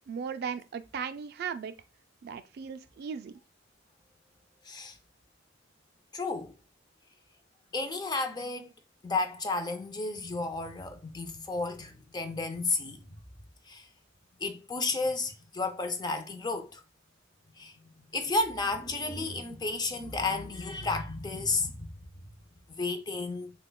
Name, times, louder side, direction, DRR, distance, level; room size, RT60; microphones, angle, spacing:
voice 1, 0.1-1.7 2.2-3.3, right 6 dB, 50° right, 0.3 m, -37 dB
voice 2, 4.6-5.0 6.1-6.5 7.7-8.7 9.0-13.0 13.7-13.9 14.4-16.8 17.6-17.7 18.1-21.9 22.8-23.5, left 3 dB, 20° left, 0.4 m, -32 dB
6.6 x 2.2 x 2.2 m
head